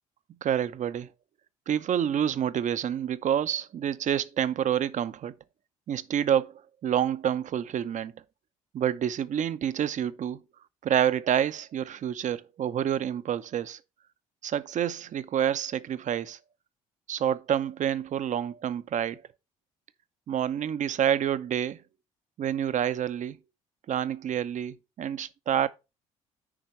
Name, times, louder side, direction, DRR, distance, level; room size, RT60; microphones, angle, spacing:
voice 1, 0.4-1.1 1.7-5.3 5.9-8.1 8.7-10.4 10.8-13.8 14.4-16.4 17.1-19.2 20.3-21.8 22.4-23.4 23.9-25.7, right 9 dB, 45° right, 0.7 m, -28 dB
9.9 x 4.4 x 4.4 m
hypercardioid pair, 50°, 17 cm